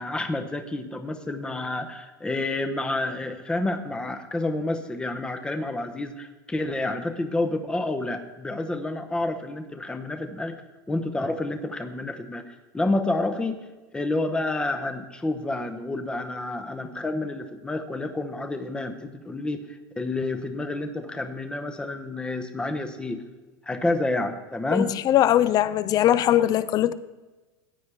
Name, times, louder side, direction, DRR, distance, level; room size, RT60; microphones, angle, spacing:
voice 1, 0.0-10.6 10.9-13.6 13.9-19.6 20.0-23.2 23.7-24.9, left 2 dB, 5° left, 0.8 m, -29 dB
voice 2, 24.7-26.9, left 12 dB, 30° left, 0.5 m, -21 dB
15.5 x 9.3 x 3.4 m
supercardioid pair, 135°, 12 cm